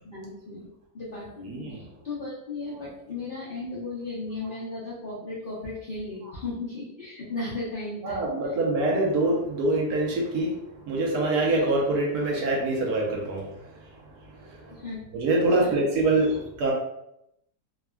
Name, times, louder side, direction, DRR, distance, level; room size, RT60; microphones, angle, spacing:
voice 1, 0.0-0.7 0.9-8.5 14.7-15.0 15.6-15.8, left 2 dB, 75° left, -7 dB, 0.5 m, -36 dB
voice 2, 8.0-10.5 10.9-13.5 15.1-16.7, right 2 dB, 70° right, -2 dB, 1.1 m, -24 dB
3.3 x 2.2 x 2.2 m, 0.80 s
omnidirectional pair, 1.9 m